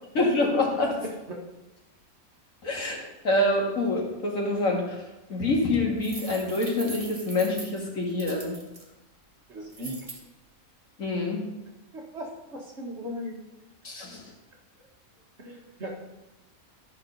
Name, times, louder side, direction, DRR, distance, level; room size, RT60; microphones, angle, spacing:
voice 1, 0.2-1.0 2.6-5.0 5.3-8.6 11.0-11.5 13.8-14.2, left 2 dB, 75° left, -1 dB, 2.4 m, -26 dB
voice 2, 1.0-1.5 9.5-10.0 11.9-13.4 15.4-16.1, equal, 55° right, -1 dB, 2.0 m, -38 dB
sound 1, 6.0-8.8 9.7-10.2, right 2 dB, 25° right, 1.5 m, -41 dB
12.0 x 5.8 x 5.4 m, 1.0 s
omnidirectional pair, 1.4 m